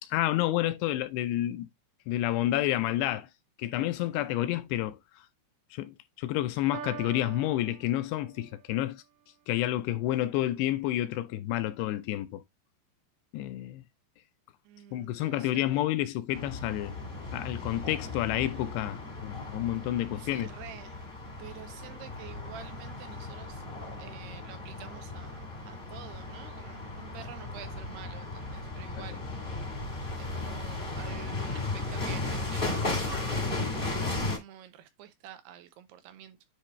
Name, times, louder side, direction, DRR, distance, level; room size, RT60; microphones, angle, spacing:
voice 1, 0.0-1.7 2.1-3.3 3.6-5.0 5.7-9.0 9.5-12.4 13.3-13.8 14.9-16.9 17.3-20.5 29.0-29.1, left 14 dB, 80° left, 2.6 m, -29 dB
Piano, 6.7-8.7, right 11 dB, 65° right, 2.4 m, -44 dB
voice 2, 14.6-15.8 20.2-21.1 21.4-23.7 24.0-29.7 30.2-36.4, right 10 dB, 80° right, 2.6 m, -49 dB
sound 1, 16.3-34.4, left 2 dB, 25° left, 1.0 m, -36 dB
10.0 x 3.4 x 3.1 m
omnidirectional pair, 5.0 m